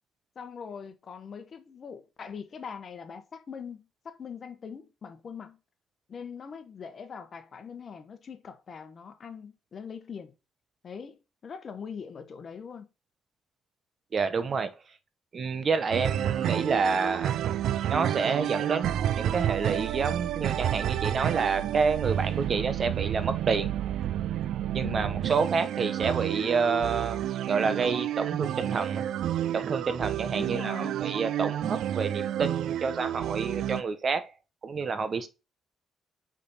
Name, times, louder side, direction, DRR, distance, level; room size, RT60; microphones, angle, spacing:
voice 1, 0.3-5.6 6.1-10.3 10.8-12.9 24.8-25.2 30.4-30.9, left 6 dB, 50° left, 1.2 m, -42 dB
voice 2, 14.1-14.7 15.3-17.3 17.9-23.7 24.7-29.0 29.5-34.3 34.6-35.3, right 5 dB, 45° right, 1.0 m, -29 dB
sound 1, 15.9-33.8, right 11 dB, 75° right, 0.3 m, -30 dB
5.3 x 5.1 x 4.2 m
cardioid pair, 90°, 0 cm